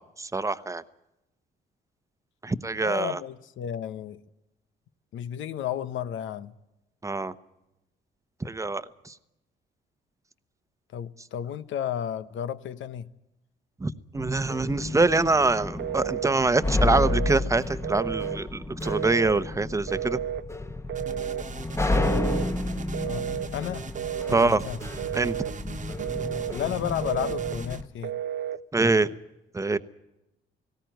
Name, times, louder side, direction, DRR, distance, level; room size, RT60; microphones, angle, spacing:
voice 1, 0.2-0.8 2.4-3.2 7.0-7.3 8.4-9.1 13.8-20.2 24.3-24.6 25.1-25.4 28.7-29.1 29.5-29.8, right 3 dB, 15° right, 0.9 m, -25 dB
voice 2, 2.8-4.2 5.1-6.5 10.9-13.1 23.0-23.3 23.5-23.9 24.3-24.8 26.5-28.1, left 10 dB, 75° left, 1.0 m, -32 dB
sound 1, 14.2-27.9, left 2 dB, 15° left, 1.1 m, -31 dB
Telephone, 15.8-16.4 16.8-17.4 17.8-18.4 18.9-19.4 19.9-20.4 20.9-21.5 21.9-22.5 22.9-23.5 24.0-24.5 25.0-25.5 26.0-26.6 27.0-27.6 28.0-28.6, right 10 dB, 65° right, 0.7 m, -32 dB
sound 2, 20.9-27.8, right 4 dB, 40° right, 1.4 m, -41 dB
19.0 x 16.5 x 9.2 m
cardioid pair, 90°, 20 cm